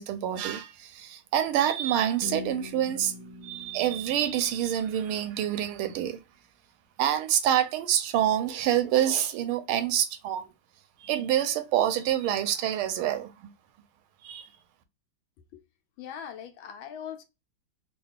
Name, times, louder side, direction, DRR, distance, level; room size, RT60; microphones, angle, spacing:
voice 1, 0.0-3.1 3.4-6.2 7.0-10.5 11.0-13.3 14.2-14.5, right 11 dB, 90° right, 1.5 m, -27 dB
sound 1, 2.2-6.1, left 2 dB, 70° right, 0.4 m, -44 dB
voice 2, 16.0-17.2, left 8 dB, 75° left, 1.4 m, -40 dB
3.7 x 2.3 x 3.5 m
omnidirectional pair, 2.3 m